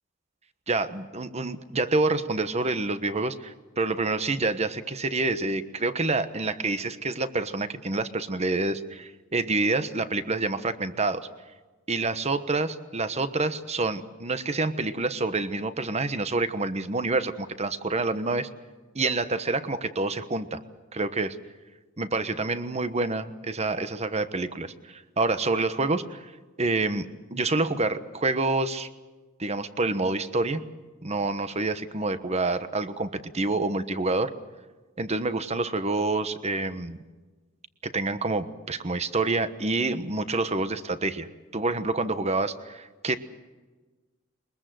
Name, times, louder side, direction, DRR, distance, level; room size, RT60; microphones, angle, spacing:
voice 1, 0.7-11.3 11.9-18.5 18.9-20.6 20.9-21.4 22.0-26.3 26.6-28.9 29.4-30.6 31.0-34.3 35.0-37.0 37.8-41.3 41.5-43.2, right 3 dB, 35° right, 11 dB, 1.2 m, -27 dB
22.5 x 21.5 x 7.8 m, 1.3 s
head